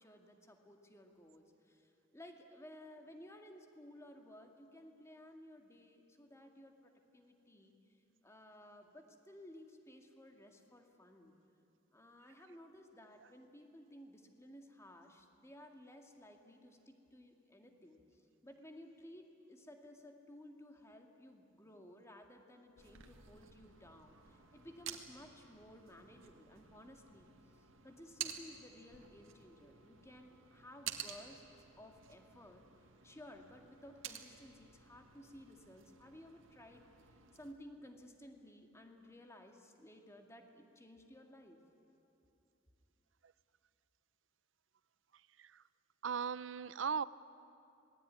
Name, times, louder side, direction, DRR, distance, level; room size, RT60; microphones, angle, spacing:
voice 1, 0.0-7.8 8.2-11.4 11.9-27.3 27.6-31.4 31.8-32.6 33.0-36.9 37.3-41.6, left 1 dB, 15° left, 4 dB, 2.1 m, -56 dB
sound 1, 22.8-37.5, right 9 dB, 85° right, 1.9 m, -52 dB
voice 2, 46.0-47.0, right 6 dB, 70° right, 17 dB, 0.6 m, -37 dB
26.5 x 20.0 x 9.7 m, 2.7 s
head